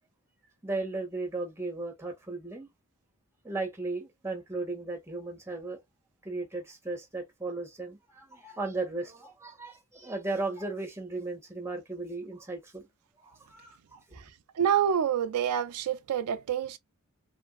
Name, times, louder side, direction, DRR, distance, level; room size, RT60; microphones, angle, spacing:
voice 1, 0.6-2.7 3.4-5.8 6.2-12.9 13.2-14.2, right 3 dB, 10° right, 1.4 m, -36 dB
voice 2, 14.6-16.8, right 9 dB, 90° right, 0.4 m, -27 dB
3.6 x 2.6 x 2.3 m
head